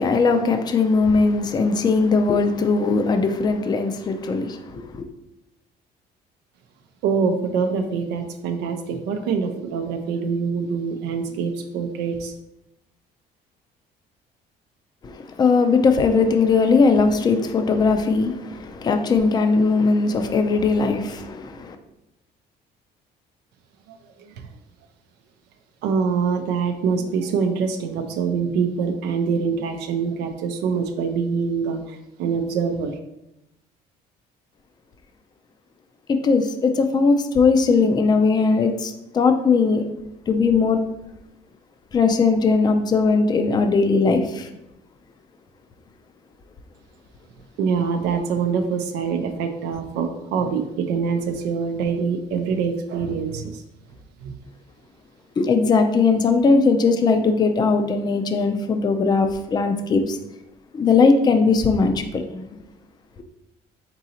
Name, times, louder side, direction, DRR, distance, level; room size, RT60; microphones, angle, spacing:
voice 1, 0.0-5.0 15.0-21.8 36.1-39.8 40.3-40.8 41.9-44.5 55.4-60.2 60.7-62.6, left 4 dB, 25° left, 0.4 m, -19 dB
voice 2, 7.0-12.3 23.9-24.5 25.8-33.0 47.6-53.6 54.2-54.3, right 5 dB, 85° right, 0.5 m, -25 dB
3.9 x 3.8 x 2.8 m
cardioid pair, 110°, 17 cm